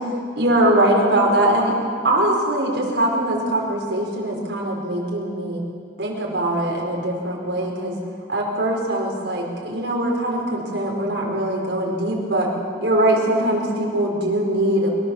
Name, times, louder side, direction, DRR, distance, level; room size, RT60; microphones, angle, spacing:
voice 1, 0.4-1.7 2.0-5.6 6.0-8.0 8.3-12.5 12.8-14.9, right 1 dB, 85° right, -2 dB, 4.5 m, -21 dB
23.5 x 23.0 x 7.1 m, 2.3 s
head